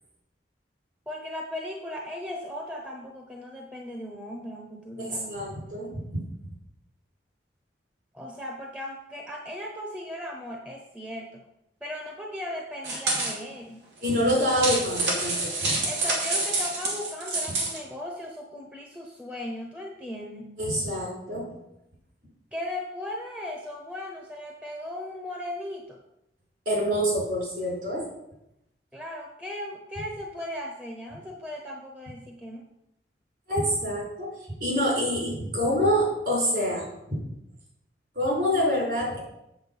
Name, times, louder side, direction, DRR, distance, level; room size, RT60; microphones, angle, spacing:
voice 1, 1.1-5.4 8.1-11.4 11.8-13.8 15.8-20.6 22.5-26.0 28.9-32.6, left 1 dB, 5° right, 1 dB, 0.8 m, -37 dB
voice 2, 5.0-6.2 14.0-15.8 20.6-21.5 26.6-28.1 33.5-34.3 34.6-37.3 38.1-39.2, equal, 55° right, -2 dB, 4.5 m, -26 dB
sound 1, 12.8-13.4 14.1-17.8, right 2 dB, 85° right, 2.6 m, -28 dB
8.1 x 7.5 x 5.5 m, 0.85 s
head